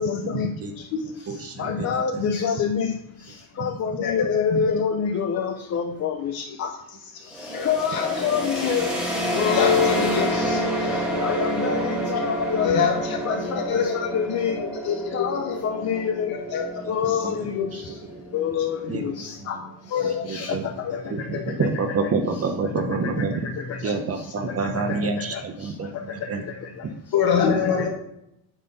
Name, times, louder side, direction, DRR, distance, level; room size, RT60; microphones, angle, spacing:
voice 1, 0.0-0.5 1.6-2.9 3.6-6.3 6.6-6.7 7.7-8.8 9.4-10.6 11.2-14.6 15.1-16.3 16.9-17.7 18.3-19.6 20.3-20.6 21.9-22.0 23.0-23.1 23.7-23.8 24.6-24.7 25.3-25.4 27.5-27.9, left 7 dB, 35° left, 5 dB, 0.6 m, -26 dB
voice 2, 1.0-2.3 3.5-3.9 17.0-17.8 18.1-18.2 18.9-19.0 19.4-19.6 20.0-20.7 21.1-23.5 23.8-26.4, right 4 dB, 35° right, 6 dB, 0.8 m, -28 dB
sound 1, 7.3-19.0, equal, ahead, 1.7 m, -28 dB
voice 3, 12.6-13.2 13.5-13.9 14.6-15.6 16.5-16.8 19.9-20.3 21.3-21.4 27.1-27.9, left 7 dB, 55° left, 0 dB, 2.1 m, -24 dB
9.0 x 4.3 x 5.3 m, 0.81 s
cardioid pair, 155°, 44 cm